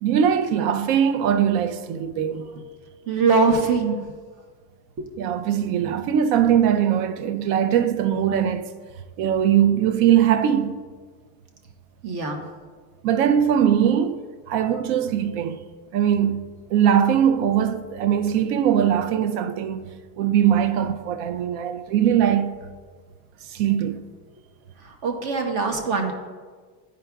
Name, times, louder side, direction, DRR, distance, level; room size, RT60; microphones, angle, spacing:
voice 1, 0.0-2.5 5.2-8.7 9.2-10.8 13.0-14.2 14.5-15.6 15.9-22.5 23.5-24.0, right 9 dB, 80° right, 0.6 m, -21 dB
voice 2, 3.1-4.0 5.0-5.1 12.0-12.4 24.8-26.1, right 4 dB, 50° right, 1.0 m, -22 dB
11.0 x 4.9 x 2.3 m
cardioid pair, 180°, 43 cm